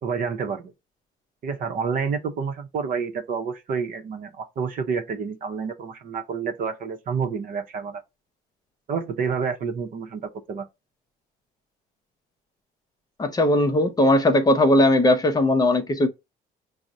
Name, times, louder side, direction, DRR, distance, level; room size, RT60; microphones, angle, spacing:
voice 1, 0.0-0.7 1.4-8.0 8.9-10.7, right 6 dB, 55° right, 0.7 m, -29 dB
voice 2, 13.2-16.1, left 1 dB, 20° left, 0.6 m, -19 dB
6.0 x 2.0 x 2.6 m
cardioid pair, 110°, 17 cm